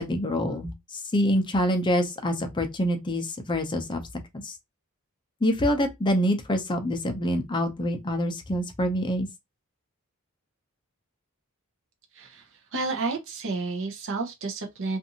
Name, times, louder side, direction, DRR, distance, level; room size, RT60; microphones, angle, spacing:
voice 1, 0.0-4.0 4.4-4.5 5.4-9.3, equal, 20° left, 0.5 m, -26 dB
voice 2, 12.1-15.0, right 3 dB, 60° right, 0.7 m, -31 dB
2.5 x 2.5 x 2.7 m
head